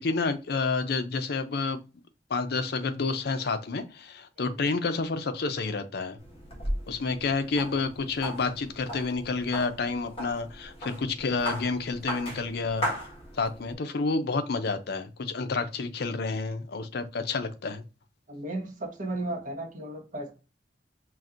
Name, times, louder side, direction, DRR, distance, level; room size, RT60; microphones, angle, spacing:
voice 1, 0.0-1.8 2.3-6.2 6.9-13.0 13.3-17.8, left 4 dB, 65° left, 0.5 m, -29 dB
sound 1, 6.2-13.7, equal, 35° left, 1.4 m, -37 dB
voice 2, 18.3-20.3, right 1 dB, 50° right, 1.2 m, -35 dB
5.7 x 2.5 x 2.5 m
head